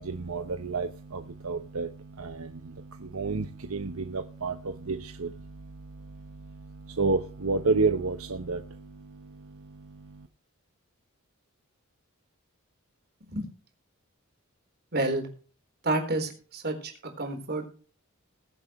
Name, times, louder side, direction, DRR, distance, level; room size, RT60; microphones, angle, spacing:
voice 1, 0.0-10.3, right 3 dB, 75° right, 7 dB, 0.9 m, -31 dB
voice 2, 14.9-15.3 15.8-16.9 17.2-17.7, right 2 dB, 50° right, 4 dB, 3.9 m, -29 dB
21.0 x 7.7 x 3.1 m, 0.39 s
head